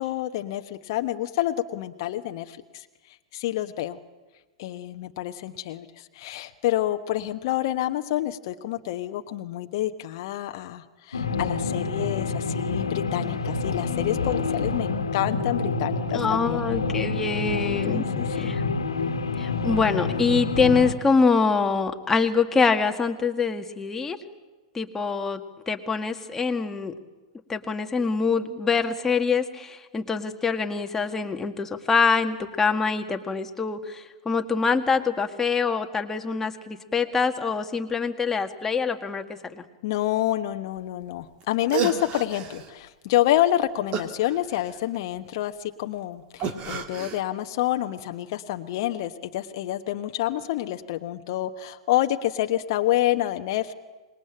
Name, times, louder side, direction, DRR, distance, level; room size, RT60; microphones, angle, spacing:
voice 1, 0.0-2.9 3.3-4.0 4.6-16.6 17.9-18.5 39.8-53.7, left 14 dB, 50° left, 6 dB, 1.1 m, -28 dB
sound 1, 11.1-20.9, left 4 dB, 75° left, 1.8 m, -27 dB
voice 2, 16.1-18.1 18.4-18.6 19.4-24.2 24.7-25.4 25.7-26.9 27.5-39.2 39.5-39.6, left 5 dB, 15° left, 5 dB, 1.8 m, -24 dB
sound 2, 41.4-41.5 41.7-42.7 43.9-45.0 46.4-47.2, right 7 dB, 35° right, 2.2 m, -31 dB
26.0 x 21.0 x 8.9 m, 1.2 s
figure-of-eight pair, 100°, 3 cm